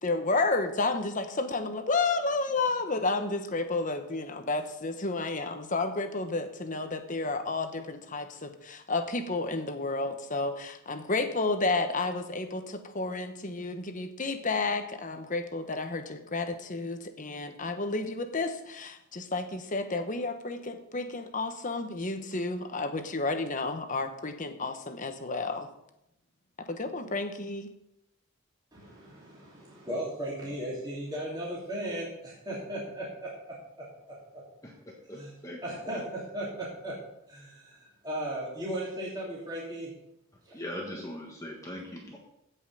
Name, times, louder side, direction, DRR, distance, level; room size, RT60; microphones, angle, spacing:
voice 1, 0.0-25.7 26.7-27.7, left 3 dB, 35° left, 7 dB, 1.1 m, -31 dB
voice 2, 28.7-33.3 35.1-35.3 35.6-37.0 37.3-39.9 40.4-40.6, right 1 dB, 20° right, -7 dB, 3.0 m, -36 dB
voice 3, 35.1-35.6 35.9-36.0 40.5-42.2, left 1 dB, 15° left, -1 dB, 1.4 m, -40 dB
16.0 x 5.6 x 5.6 m, 0.84 s
head